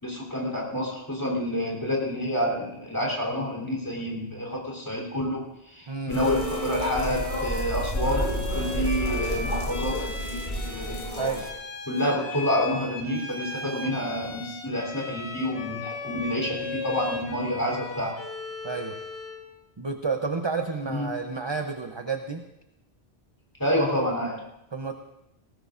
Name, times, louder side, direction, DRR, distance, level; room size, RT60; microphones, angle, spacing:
voice 1, 0.0-8.3 8.5-10.0 10.7-11.0 11.9-18.2 20.9-21.1 23.6-24.4, equal, 15° left, -3 dB, 3.5 m, -28 dB
voice 2, 5.9-6.2 11.2-11.5 18.6-19.0 19.8-22.4 24.7-25.0, right 4 dB, 30° right, 5 dB, 0.7 m, -30 dB
Bowed string instrument, 6.1-19.5, left 3 dB, 65° left, 1.9 m, -37 dB
sound 1, 6.1-11.5, equal, 45° left, 2.4 m, -30 dB
19.5 x 17.5 x 2.6 m, 0.86 s
omnidirectional pair, 1.1 m